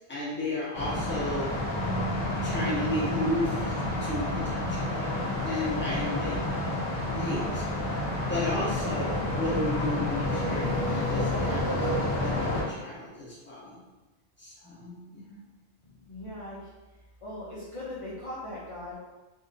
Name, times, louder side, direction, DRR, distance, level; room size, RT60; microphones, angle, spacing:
voice 1, 0.1-1.5 2.4-5.1 5.4-6.4 7.0-8.0 8.3-13.8 14.4-15.4, left 1 dB, 10° left, -8 dB, 0.9 m, -33 dB
sound 1, 0.7-12.6, left 1 dB, 60° left, 1.1 m, -29 dB
voice 2, 15.8-16.7 17.2-18.9, left 1 dB, 35° left, -9 dB, 0.7 m, -39 dB
3.6 x 2.9 x 2.5 m, 1.1 s
omnidirectional pair, 1.1 m